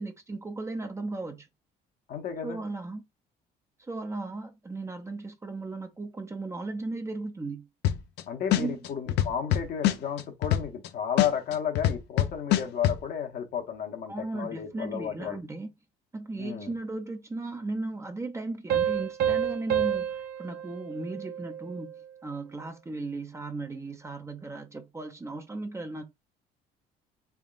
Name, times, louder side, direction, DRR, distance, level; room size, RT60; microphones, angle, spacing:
voice 1, 0.0-1.5 2.4-3.0 3.8-7.7 8.6-8.8 14.1-15.7 16.1-26.0, right 2 dB, 15° right, 0.5 m, -36 dB
voice 2, 2.1-2.6 8.3-15.4 16.4-16.7, left 8 dB, 65° left, 1.0 m, -32 dB
sound 1, 7.8-8.2 8.5-10.9 11.2-13.0, left 12 dB, 85° left, 0.5 m, -24 dB
Piano, 18.7-22.0, right 9 dB, 70° right, 0.8 m, -29 dB
3.6 x 3.5 x 2.4 m
cardioid pair, 110°, 17 cm